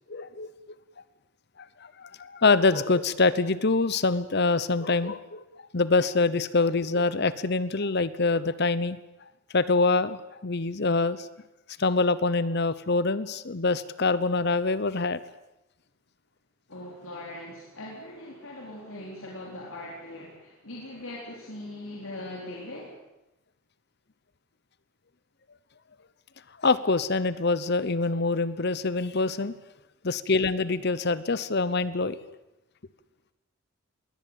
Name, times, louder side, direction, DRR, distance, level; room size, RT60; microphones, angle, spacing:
voice 1, 0.1-0.5 2.0-5.4 5.7-9.0 9.5-11.3 11.8-15.2 26.6-29.5 30.0-32.2, left 3 dB, 50° left, 16 dB, 0.9 m, -25 dB
voice 2, 16.7-23.0, left 1 dB, 75° left, -2 dB, 4.2 m, -40 dB
21.5 x 18.0 x 9.1 m, 0.93 s
head